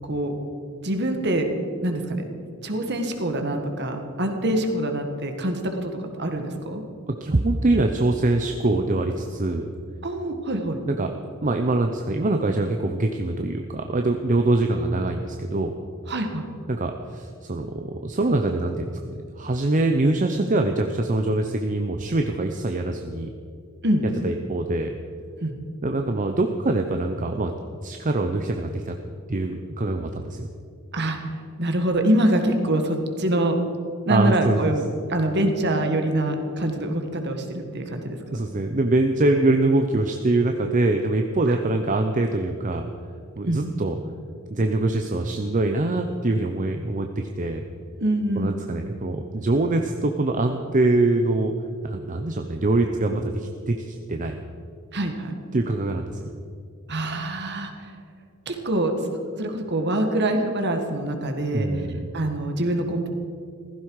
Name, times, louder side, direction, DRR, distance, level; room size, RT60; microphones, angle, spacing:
voice 1, 0.8-1.5 1.8-2.2 2.6-5.9 6.2-6.8 10.0-10.8 16.1-16.4 23.8-24.0 25.4-25.5 30.9-31.2 31.6-33.6 34.0-34.8 35.1-38.2 43.4-43.6 48.0-48.6 54.9-55.3 56.9-57.7 58.4-61.7 62.1-63.1, right 1 dB, 50° right, 5 dB, 1.7 m, -25 dB
voice 2, 7.2-9.7 10.9-11.1 11.4-15.7 16.7-23.3 24.2-24.9 25.8-27.5 27.8-29.0 29.3-30.5 34.1-34.7 38.3-42.9 43.4-44.0 44.5-47.6 48.3-51.5 51.8-54.4 55.5-56.3 61.5-62.1, right 2 dB, 35° right, 5 dB, 0.7 m, -24 dB
15.5 x 15.5 x 4.8 m, 2.4 s
head